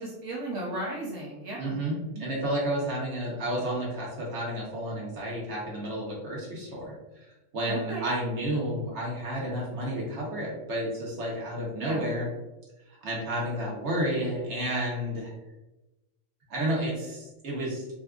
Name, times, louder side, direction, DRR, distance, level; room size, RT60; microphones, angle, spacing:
voice 1, 0.0-1.7 2.1-2.3 7.7-8.1 11.8-12.0, right 2 dB, 80° right, -5 dB, 1.1 m, -35 dB
voice 2, 1.6-6.9 7.5-12.3 13.0-15.3 16.5-17.9, right 1 dB, 60° right, -4 dB, 1.3 m, -31 dB
4.1 x 2.4 x 2.4 m, 1.0 s
omnidirectional pair, 1.3 m